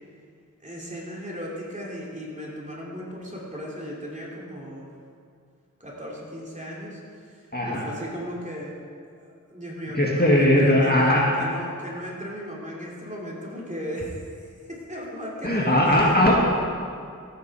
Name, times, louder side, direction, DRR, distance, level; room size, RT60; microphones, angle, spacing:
voice 1, 0.6-4.9 5.8-8.7 9.1-16.2, equal, 25° right, -4 dB, 3.0 m, -36 dB
voice 2, 7.5-7.9 9.9-11.4 15.4-16.4, left 1 dB, 30° left, -3 dB, 1.8 m, -19 dB
14.0 x 9.0 x 4.8 m, 2.2 s
wide cardioid pair, 50°, 32 cm